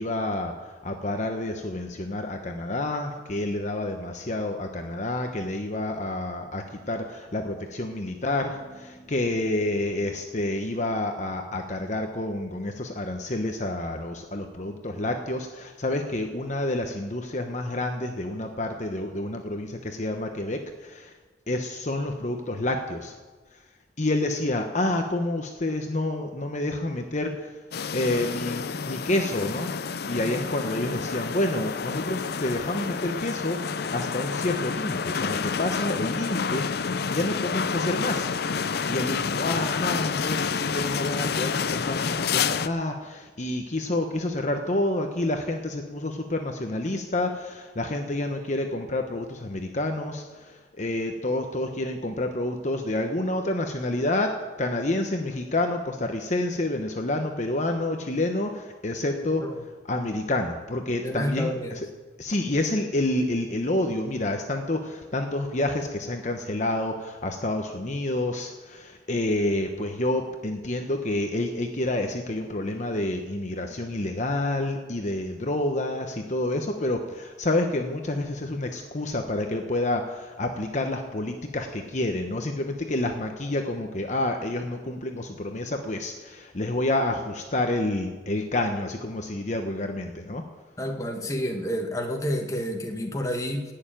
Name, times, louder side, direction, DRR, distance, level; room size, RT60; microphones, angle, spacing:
voice 1, 0.0-21.1 21.5-23.2 23.5-23.6 24.0-27.6 27.9-29.7 30.1-38.3 38.9-61.9 62.2-90.4, left 1 dB, 40° left, 4 dB, 1.0 m, -29 dB
sound 1, 27.7-42.7, left 5 dB, 60° left, 0.5 m, -29 dB
voice 2, 61.0-61.8 90.8-93.6, equal, 20° left, 3 dB, 1.5 m, -29 dB
18.0 x 6.8 x 9.0 m, 1.3 s
head